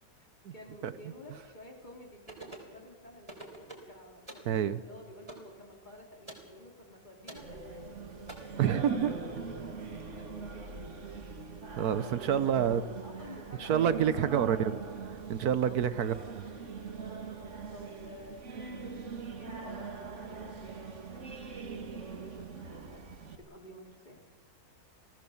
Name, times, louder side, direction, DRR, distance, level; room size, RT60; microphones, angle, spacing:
voice 1, 0.2-7.9 8.5-9.8 10.1-10.9 12.3-14.5 15.6-16.0 17.0-18.5 19.4-23.0 23.5-24.2, left 1 dB, 30° left, 1 dB, 3.4 m, -52 dB
sound 1, 2.3-2.7 3.3-3.9 4.3-4.5 5.3-5.5 6.3-6.5 7.3-7.5 8.3-8.4, right 1 dB, 15° right, 3.9 m, -45 dB
voice 2, 4.5-4.8 8.6-9.2 11.8-12.8 13.6-14.8 15.3-16.2, right 9 dB, 75° right, 13 dB, 1.4 m, -27 dB
Singing, 7.3-23.4, right 5 dB, 50° right, 1.9 m, -42 dB
28.5 x 18.0 x 7.2 m, 1.4 s
omnidirectional pair, 1.6 m